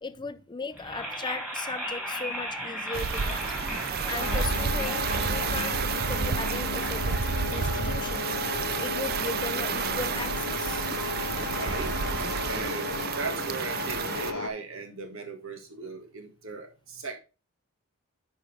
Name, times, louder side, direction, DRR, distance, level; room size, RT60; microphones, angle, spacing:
voice 1, 0.0-3.6 4.1-10.9, left 4 dB, 20° left, 0.4 m, -38 dB
sound 1, 0.7-10.8, equal, 5° right, 2.6 m, -38 dB
sound 2, 2.9-14.3, right 6 dB, 45° right, 0.4 m, -30 dB
sound 3, 4.2-14.5, left 6 dB, 80° left, 0.7 m, -35 dB
voice 2, 11.5-11.9 12.5-17.2, right 3 dB, 65° right, 1.7 m, -37 dB
9.5 x 5.4 x 3.3 m
head